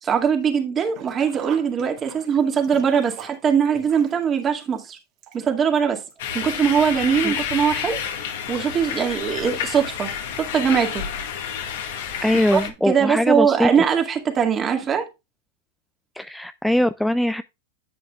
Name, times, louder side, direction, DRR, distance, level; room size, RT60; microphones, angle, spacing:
voice 1, 0.0-5.0 5.3-6.0 6.3-8.0 8.5-10.1 10.4-11.0 12.5-12.6 12.9-15.1, right 7 dB, 25° right, 2.1 m, -21 dB
Sink (filling or washing), 0.8-5.8 6.1-6.2 7.2-7.3 7.6-7.7, right 9 dB, 45° right, 2.0 m, -43 dB
sound 1, 6.2-12.7, left 8 dB, 65° left, 1.8 m, -29 dB
voice 2, 12.2-13.7 16.2-17.4, left 1 dB, 5° left, 0.3 m, -21 dB
10.5 x 7.7 x 2.4 m
hypercardioid pair, 105°, 0 cm